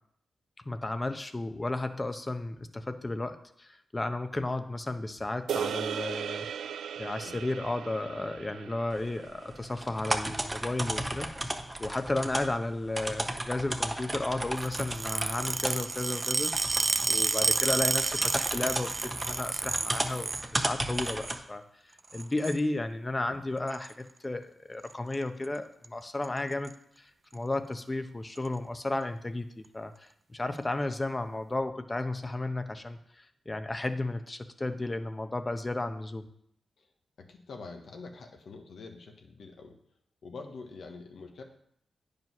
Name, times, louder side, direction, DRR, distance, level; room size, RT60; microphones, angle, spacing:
voice 1, 0.6-6.5 7.0-11.3 11.8-21.6 22.1-36.3, left 2 dB, 30° left, 8 dB, 1.0 m, -33 dB
sound 1, 5.5-10.0, right 8 dB, 85° right, 0.3 m, -37 dB
sound 2, 8.9-21.4, right 1 dB, 20° right, 1.1 m, -35 dB
sound 3, 14.6-20.5 20.8-21.4 22.1-22.6 23.7-23.9 24.9-25.2 25.4-25.6 25.8-25.9 26.2-26.7 27.3-27.4 28.4-28.5, right 3 dB, 45° right, 0.6 m, -30 dB
voice 2, 16.9-17.2 23.3-23.4 32.3-32.4 36.8-36.9 37.2-39.8 40.2-41.4, left 4 dB, 75° left, 3 dB, 1.4 m, -46 dB
9.2 x 5.1 x 6.0 m, 0.70 s
supercardioid pair, 50°, 0 cm